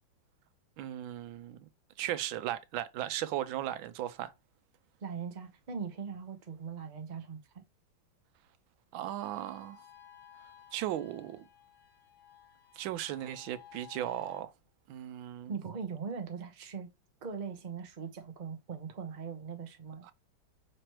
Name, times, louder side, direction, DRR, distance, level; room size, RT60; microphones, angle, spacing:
voice 1, 0.8-1.7 2.0-4.3 8.9-9.8 10.7-11.5 12.8-14.5 14.9-15.5 20.0-20.1, right 12 dB, 90° right, 1.4 m, -37 dB
voice 2, 5.0-7.6 15.5-16.9 17.2-20.1, right 6 dB, 50° right, 0.5 m, -40 dB
sound 1, 9.2-14.4, left 10 dB, 55° left, 2.2 m, -56 dB
5.9 x 3.0 x 3.0 m
omnidirectional pair, 2.1 m